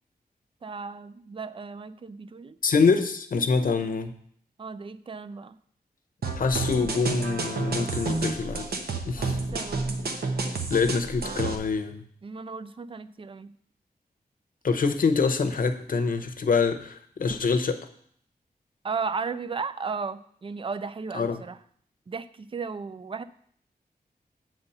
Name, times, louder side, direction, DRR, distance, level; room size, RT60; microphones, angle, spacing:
voice 1, 0.6-2.6 4.6-5.6 9.2-10.0 12.2-13.5 18.8-21.6 22.1-23.2, right 5 dB, 35° right, 14 dB, 0.4 m, -35 dB
voice 2, 2.6-4.1 6.4-8.7 9.1-9.4 10.7-12.0 14.6-17.8 21.1-21.4, left 4 dB, 60° left, 7 dB, 0.8 m, -25 dB
sound 1, 6.2-11.6, right 3 dB, 80° right, 1.0 m, -30 dB
7.8 x 4.2 x 6.7 m, 0.62 s
wide cardioid pair, 150°, 16 cm